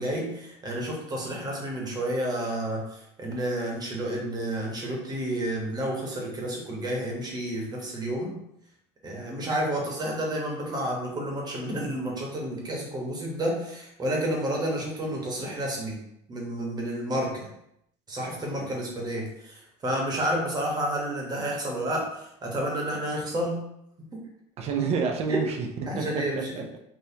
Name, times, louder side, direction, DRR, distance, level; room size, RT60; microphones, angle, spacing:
voice 1, 0.0-8.4 9.0-16.0 16.3-17.5 18.1-23.6 25.3-25.4 25.9-26.5, right 1 dB, 30° right, -1 dB, 1.2 m, -30 dB
voice 2, 24.6-26.8, right 5 dB, 50° right, 3 dB, 0.6 m, -29 dB
4.1 x 2.5 x 2.8 m, 0.79 s
supercardioid pair, 105°, 14 cm